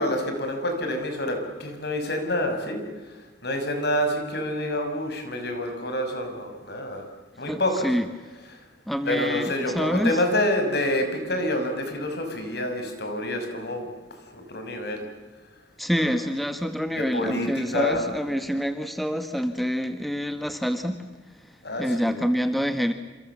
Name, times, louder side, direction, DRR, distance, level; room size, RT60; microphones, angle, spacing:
voice 1, 0.0-2.8 3.4-7.1 7.4-7.9 9.1-13.9 14.3-15.0 16.0-16.1 17.0-18.1 21.6-22.2, left 1 dB, 60° left, 5 dB, 6.0 m, -27 dB
voice 2, 7.5-8.1 8.9-10.2 15.8-21.0 21.3-21.5 21.8-22.9, equal, ahead, 8 dB, 1.3 m, -27 dB
28.5 x 27.0 x 7.3 m, 1.3 s
head